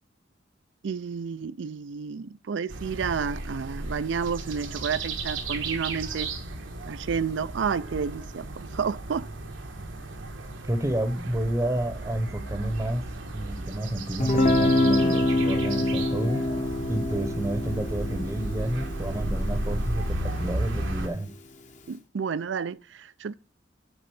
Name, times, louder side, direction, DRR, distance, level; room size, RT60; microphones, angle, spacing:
voice 1, 0.8-6.3 6.9-9.3 21.9-23.3, right 6 dB, 70° right, 0.4 m, -31 dB
sound 1, 2.7-21.1, right 2 dB, 85° right, 1.3 m, -34 dB
voice 2, 10.7-16.5 16.9-21.3, right 1 dB, 15° right, 0.8 m, -30 dB
Guitar, 14.2-20.0, left 2 dB, 40° left, 1.0 m, -26 dB
9.0 x 3.8 x 7.0 m
head